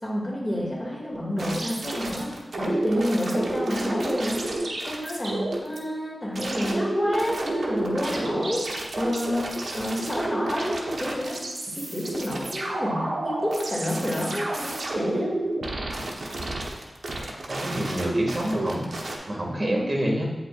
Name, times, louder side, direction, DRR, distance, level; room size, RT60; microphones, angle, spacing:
voice 1, 0.0-2.3 2.6-4.4 4.8-8.6 9.0-11.4 11.7-15.3, equal, 20° left, -3 dB, 2.3 m, -29 dB
sound 1, 1.4-5.8 6.3-19.2, right 2 dB, 75° right, 1.2 m, -30 dB
voice 2, 17.5-20.2, equal, 35° right, -2 dB, 2.0 m, -28 dB
8.9 x 8.0 x 2.5 m, 1.2 s
wide cardioid pair, 65°, 0 cm